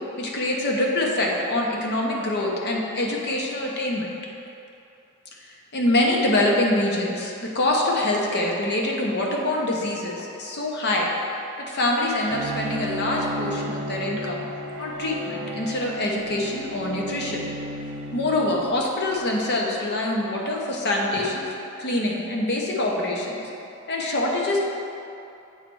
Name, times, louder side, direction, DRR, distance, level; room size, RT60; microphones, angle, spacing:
voice 1, 0.2-4.1 5.4-11.1 11.6-14.4 14.8-17.4 18.1-23.4 23.9-24.6, left 1 dB, 50° left, -1 dB, 0.9 m, -25 dB
Bowed string instrument, 12.3-19.0, right 1 dB, 60° right, 0.5 m, -33 dB
8.4 x 3.2 x 4.6 m, 2.7 s
head